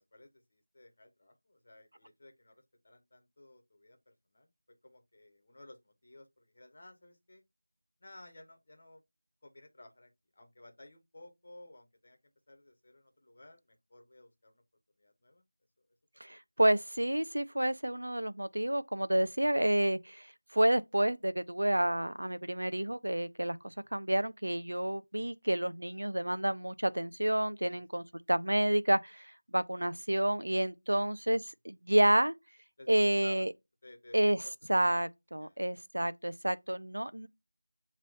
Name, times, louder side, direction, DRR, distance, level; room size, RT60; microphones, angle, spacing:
voice 1, 0.0-4.5 4.8-7.4 8.0-9.0 9.4-14.6 15.0-15.4 15.8-15.9 16.3-16.4 23.6-23.9 27.6-27.8 30.9-31.4 32.8-33.5 33.8-34.2 34.4-34.5 35.4-35.8, left 1 dB, 35° left, 1.3 m, -56 dB
voice 2, 16.2-20.3 20.5-31.4 31.6-32.3 32.9-33.5 34.1-34.4 34.7-37.3, right 1 dB, 90° right, 0.5 m, -29 dB
6.8 x 3.1 x 2.6 m
figure-of-eight pair, 175°, 0 cm